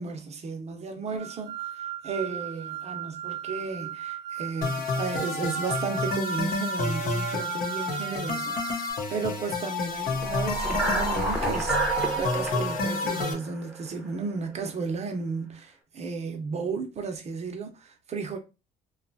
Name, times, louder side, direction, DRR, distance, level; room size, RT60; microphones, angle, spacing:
voice 1, 0.0-18.4, right 4 dB, 40° right, 0.7 m, -34 dB
sound 1, 1.2-8.9, right 12 dB, 75° right, 0.7 m, -36 dB
sound 2, 4.6-13.3, left 4 dB, 60° left, 0.7 m, -30 dB
sound 3, 10.0-14.3, right 3 dB, 5° right, 0.7 m, -29 dB
2.7 x 2.3 x 2.6 m
cardioid pair, 110°, 17 cm